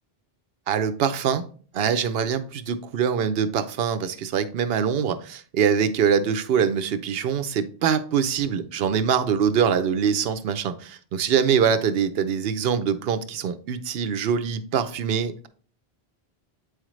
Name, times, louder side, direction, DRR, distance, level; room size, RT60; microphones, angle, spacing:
voice 1, 0.7-1.4 1.7-15.5, right 7 dB, 70° right, 11 dB, 0.9 m, -24 dB
8.3 x 5.0 x 3.1 m, 0.43 s
omnidirectional pair, 1.1 m